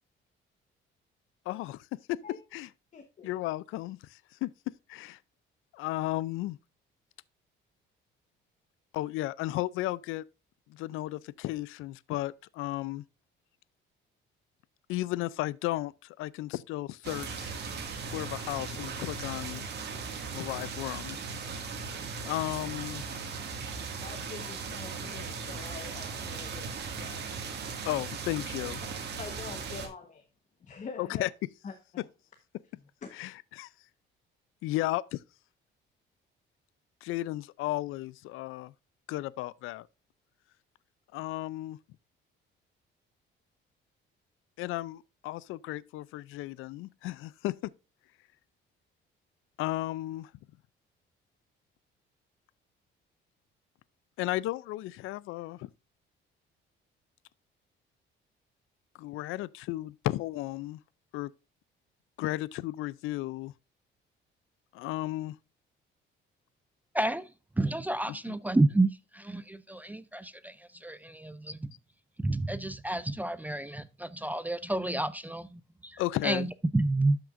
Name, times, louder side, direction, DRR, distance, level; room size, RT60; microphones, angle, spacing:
voice 1, 1.5-2.2 2.5-2.7 3.2-4.5 4.9-5.2 5.7-6.6 8.9-10.2 10.7-13.0 14.9-17.7 18.1-19.6 20.3-21.2 22.3-23.1 27.8-28.8 31.0-31.3 32.0-32.1 33.1-33.7 34.6-35.2 37.0-38.7 39.1-39.9 41.1-41.8 44.6-47.7 49.6-50.3 54.2-55.7 59.0-60.8 61.1-61.3 62.2-63.5 64.7-65.4 68.1-68.4 76.0-76.5, left 17 dB, 85° left, 0.4 m, -34 dB
voice 2, 2.9-3.3 24.0-27.4 29.2-30.2 30.6-31.3 31.6-32.1 33.0-33.1, left 5 dB, 40° left, 1.1 m, -45 dB
sound 1, 17.0-29.9, right 5 dB, 55° right, 2.0 m, -38 dB
voice 3, 66.9-67.3 67.6-70.6 70.8-71.7 72.2-77.2, right 2 dB, 10° right, 0.4 m, -30 dB
12.0 x 6.0 x 2.5 m
cardioid pair, 130°, 21 cm